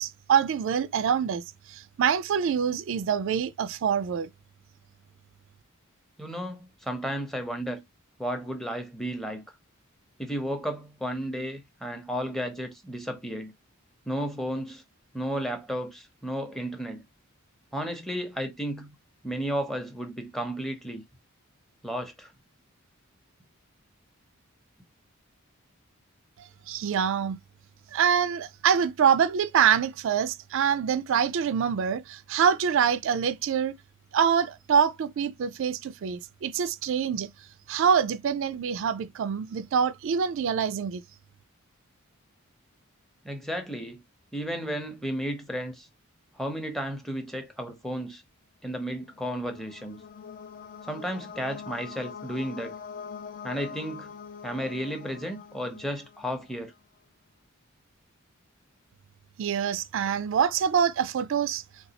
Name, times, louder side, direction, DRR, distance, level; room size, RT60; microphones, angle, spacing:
voice 1, 0.0-1.4 1.7-4.3 26.4-27.4 27.9-33.7 34.1-37.3 37.7-41.0 59.4-61.6, right 7 dB, 60° right, 0.3 m, -25 dB
voice 2, 6.2-7.8 8.2-9.4 10.2-13.5 14.1-14.8 15.1-17.0 17.7-19.0 19.2-21.0 21.8-22.3 43.2-44.0 44.3-45.9 46.3-48.2 48.6-50.0 50.9-52.7 53.4-54.2 54.4-56.7, equal, ahead, 0.7 m, -33 dB
sound 1, 49.0-56.7, left 6 dB, 40° left, 0.4 m, -43 dB
4.0 x 2.3 x 2.7 m
head